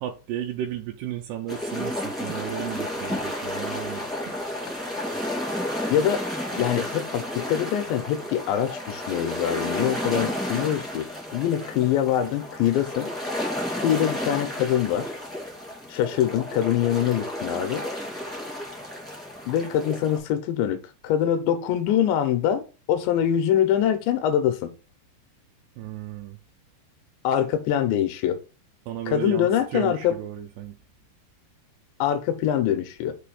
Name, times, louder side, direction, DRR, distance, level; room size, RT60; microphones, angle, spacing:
voice 1, 0.0-4.4 25.8-26.4 28.9-30.8, right 10 dB, 80° right, 2.6 m, -34 dB
sound 1, 1.5-20.2, left 1 dB, ahead, 0.6 m, -32 dB
voice 2, 5.9-6.2 6.6-13.1 13.8-15.1 15.9-17.9 19.5-24.7 27.2-28.4 29.1-30.2 32.0-33.2, left 10 dB, 85° left, 2.9 m, -24 dB
6.9 x 3.1 x 4.9 m
omnidirectional pair, 5.2 m